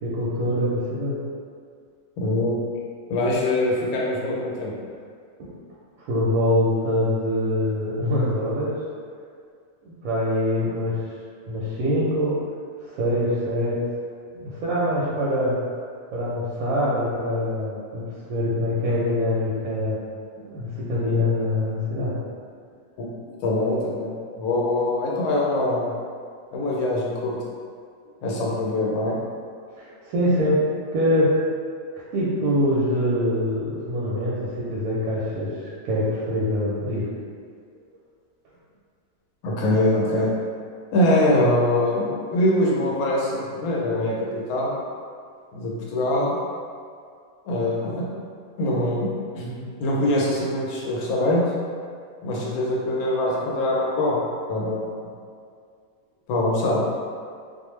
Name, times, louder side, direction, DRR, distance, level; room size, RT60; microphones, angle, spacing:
voice 1, 0.0-1.2 5.4-5.5 6.1-8.7 9.8-11.0 11.5-12.4 12.8-13.8 14.3-15.6 16.1-18.0 18.3-20.0 20.4-22.1 29.7-30.6 30.9-31.3 32.1-35.5 35.8-37.1, left 1 dB, 85° right, -7 dB, 1.1 m, -24 dB
voice 2, 2.2-2.5 3.1-4.7 23.4-24.1 24.4-25.9 26.5-27.4 28.2-29.1 39.4-40.3 40.9-44.8 45.5-46.4 47.5-48.0 48.6-49.1 49.3-51.4 52.2-54.2 54.5-55.0 56.3-56.8, left 1 dB, 85° left, -4 dB, 1.1 m, -23 dB
2.5 x 2.1 x 3.0 m, 2.2 s
omnidirectional pair, 1.5 m